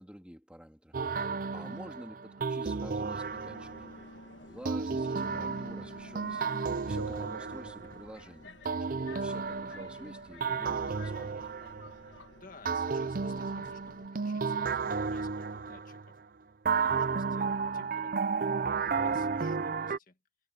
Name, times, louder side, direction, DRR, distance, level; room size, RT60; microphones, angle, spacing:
voice 1, 0.0-3.9 4.4-6.5 6.8-8.5 8.8-11.4, equal, 5° right, 2.1 m, -49 dB
sound 1, 0.9-4.0 4.6-8.2 8.6-12.2 12.6-16.1 16.6-20.0, right 5 dB, 45° right, 0.5 m, -33 dB
Subway metro underground, 3.3-14.1, left 3 dB, 75° left, 1.4 m, -51 dB
voice 2, 12.3-16.2 16.7-18.6 19.0-20.2, left 3 dB, 45° left, 2.0 m, -56 dB
head